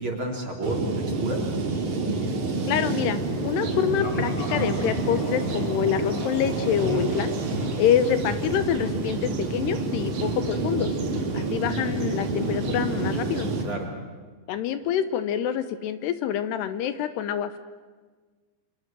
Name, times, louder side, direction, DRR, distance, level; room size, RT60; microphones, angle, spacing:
voice 1, 0.0-1.4 6.8-7.1 7.5-7.8 13.6-13.9, right 1 dB, 30° right, 1 dB, 3.6 m, -31 dB
sound 1, 0.6-13.6, right 3 dB, 45° right, 3.6 m, -28 dB
sound 2, 2.6-3.2 3.9-6.7 7.2-12.7, left 2 dB, 35° left, 3.3 m, -43 dB
voice 2, 2.7-7.3 7.8-10.9 11.3-13.5 14.5-17.6, left 9 dB, 75° left, 11 dB, 2.9 m, -26 dB
sound 3, 3.0-13.8, right 4 dB, 65° right, 4.7 m, -42 dB
30.0 x 26.5 x 7.5 m, 1.4 s
omnidirectional pair, 5.0 m